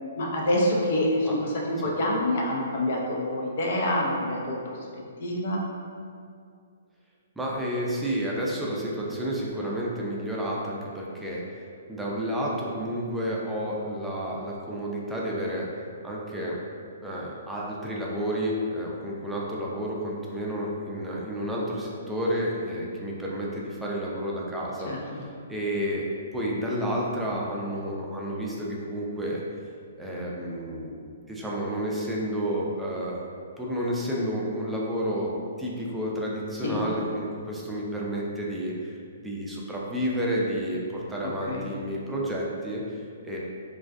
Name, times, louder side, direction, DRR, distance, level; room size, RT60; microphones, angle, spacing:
voice 1, 0.2-1.4 1.7-4.8 5.2-5.6 24.8-25.0 36.6-36.8 41.2-41.7, left 1 dB, 55° left, -2 dB, 0.4 m, -26 dB
voice 2, 7.4-11.6 11.9-15.7 16.0-16.6 17.0-26.1 26.3-29.4 30.0-31.0 31.3-33.2 33.6-43.4, equal, 5° right, -5 dB, 0.4 m, -30 dB
2.4 x 2.2 x 2.4 m, 2.3 s
figure-of-eight pair, 125°, 0 cm